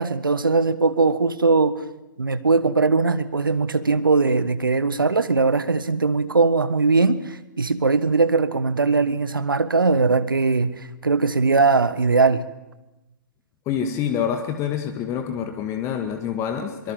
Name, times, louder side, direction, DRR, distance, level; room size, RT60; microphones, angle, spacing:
voice 1, 0.0-1.8 2.2-12.4, right 4 dB, 75° right, 14 dB, 1.3 m, -20 dB
voice 2, 13.7-16.9, left 8 dB, 25° left, 6 dB, 1.9 m, -26 dB
23.5 x 23.5 x 7.4 m, 0.99 s
figure-of-eight pair, 120°, 11 cm